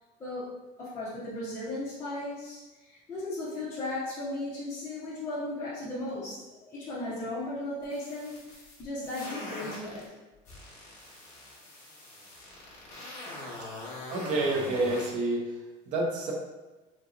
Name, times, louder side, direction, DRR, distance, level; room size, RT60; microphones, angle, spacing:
voice 1, 0.2-0.5 0.8-10.0, left 2 dB, 15° left, -12 dB, 0.7 m, -36 dB
sound 1, 7.8-10.0 10.4-15.1, left 1 dB, 45° left, 1.2 m, -43 dB
voice 2, 14.1-15.5 15.9-16.3, right 2 dB, 50° right, -1 dB, 0.6 m, -28 dB
3.7 x 2.7 x 2.5 m, 1.1 s
cardioid pair, 180°, 16 cm